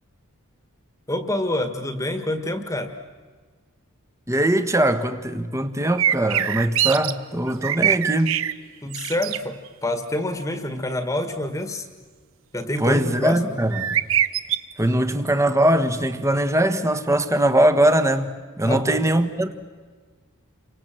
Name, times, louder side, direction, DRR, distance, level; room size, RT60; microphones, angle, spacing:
voice 1, 1.1-2.9 8.8-11.9 12.5-13.6 18.6-19.0, left 1 dB, 15° left, 1.7 m, -27 dB
voice 2, 4.3-8.4 12.8-14.0 14.8-18.3 18.6-19.6, right 1 dB, 15° right, 1.3 m, -21 dB
sound 1, 6.0-7.1 7.5-8.5 8.9-9.4 13.7-14.6, right 10 dB, 65° right, 0.8 m, -22 dB
30.0 x 25.0 x 7.7 m
head